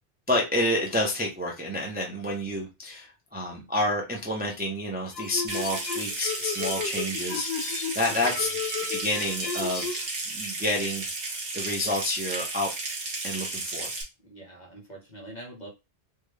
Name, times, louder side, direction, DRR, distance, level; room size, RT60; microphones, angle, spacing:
voice 1, 0.3-8.5 8.9-10.0 10.3-12.7 13.2-13.9, left 1 dB, 10° right, -1 dB, 0.5 m, -29 dB
sound 1, 5.1-10.1, left 6 dB, 70° left, 0.9 m, -34 dB
Water tap faucet / Sink (filling or washing) / Trickle dribble, 5.5-14.0, right 3 dB, 85° right, 1.2 m, -33 dB
voice 2, 8.0-8.6 14.2-15.7, right 1 dB, 45° left, 0 dB, 1.1 m, -44 dB
3.7 x 2.1 x 3.2 m, 0.25 s
omnidirectional pair, 1.1 m